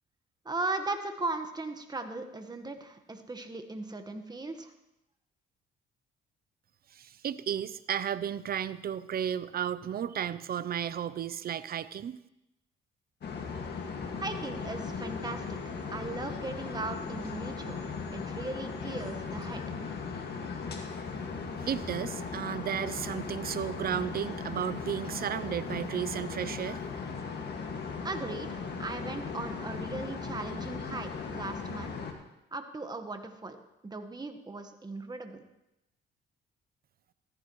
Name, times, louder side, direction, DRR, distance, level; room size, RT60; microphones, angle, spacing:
voice 1, 0.4-4.7 14.2-15.6 15.9-17.8 18.1-19.6 28.0-31.9 32.5-33.6 33.8-35.4, right 3 dB, 20° right, 6 dB, 1.4 m, -38 dB
voice 2, 6.9-12.2 21.6-26.8, right 9 dB, 50° right, 15 dB, 0.6 m, -33 dB
sound 1, 13.2-32.1, left 5 dB, 55° left, 2.0 m, -38 dB
14.5 x 14.5 x 3.2 m, 0.88 s
cardioid pair, 90°, 20 cm